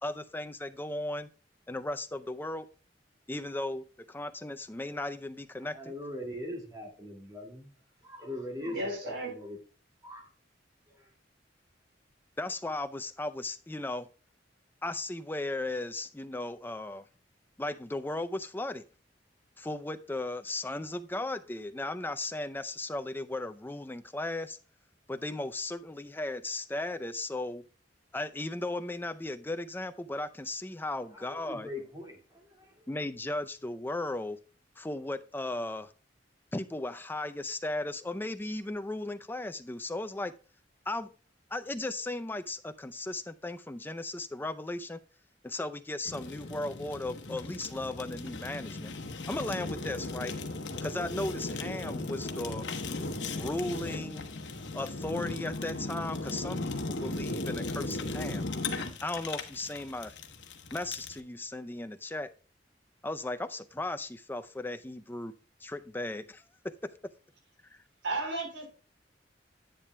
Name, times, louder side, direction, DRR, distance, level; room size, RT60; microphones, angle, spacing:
voice 1, 0.0-1.3 1.7-2.7 3.3-5.9 12.4-14.1 14.8-17.0 17.6-18.8 19.6-24.6 25.1-27.6 28.1-31.7 32.9-34.4 34.8-35.9 36.5-40.3 40.9-41.1 41.5-45.0 45.4-48.9 49.3-50.3 50.8-52.7 53.3-54.3 54.7-58.5 59.0-60.2 60.7-62.3 63.0-65.3 65.6-66.9, left 2 dB, 10° left, 0.5 m, -36 dB
voice 2, 5.6-7.7 8.0-8.8 9.0-9.6 10.0-10.3 31.2-32.9, left 1 dB, 20° right, 2.1 m, -41 dB
voice 3, 8.6-9.3 68.0-68.7, right 2 dB, 85° right, 3.7 m, -34 dB
Fire, 46.0-61.2, left 2 dB, 80° left, 1.1 m, -37 dB
10.5 x 8.4 x 2.2 m
head